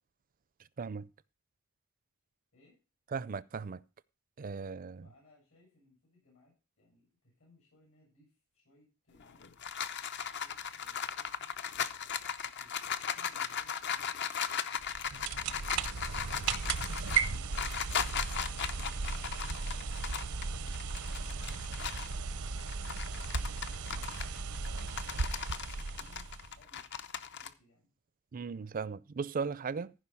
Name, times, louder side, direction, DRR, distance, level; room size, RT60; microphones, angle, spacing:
voice 1, 0.8-1.1 3.1-3.8 4.4-5.1 28.3-29.9, right 5 dB, 40° right, 0.4 m, -37 dB
voice 2, 5.0-9.6 10.1-11.6 12.4-14.7 15.0-16.8 17.3-18.2 18.6-20.2 20.5-22.1 22.7-25.5 25.9-26.3 26.6-26.9 27.3-27.9, left 2 dB, 70° left, 6.8 m, -66 dB
sound 1, 9.2-22.2 22.6-27.5, left 7 dB, 55° left, 0.7 m, -37 dB
sound 2, 14.8-26.6, right 5 dB, 85° right, 0.7 m, -36 dB
15.0 x 5.2 x 5.6 m
head